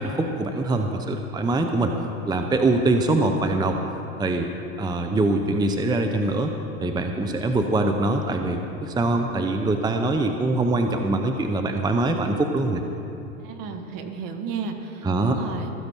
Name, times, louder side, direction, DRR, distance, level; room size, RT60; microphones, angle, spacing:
voice 1, 0.0-1.9 2.3-3.8 4.2-6.5 6.8-12.8 15.0-15.4, right 2 dB, 10° right, 5 dB, 0.8 m, -23 dB
voice 2, 13.4-15.7, right 5 dB, 50° right, 5 dB, 1.8 m, -33 dB
15.5 x 14.0 x 4.6 m, 2.8 s
hypercardioid pair, 100°, 43 cm